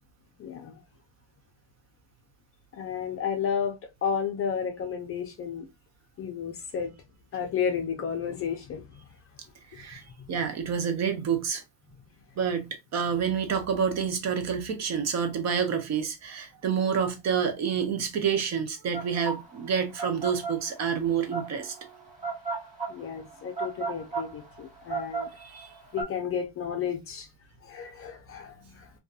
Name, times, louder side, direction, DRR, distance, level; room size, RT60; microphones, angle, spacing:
voice 1, 0.4-0.8 2.7-5.7 6.2-6.9 7.3-8.9 10.2-10.3 22.9-25.3 25.9-27.3 27.6-28.9, left 7 dB, 35° left, 0.5 m, -32 dB
voice 2, 9.7-11.6 12.4-22.0 25.4-25.7, right 7 dB, 40° right, 0.6 m, -28 dB
sound 1, 18.9-26.0, right 5 dB, 15° right, 1.1 m, -34 dB
2.5 x 2.3 x 2.3 m
supercardioid pair, 115°, 43 cm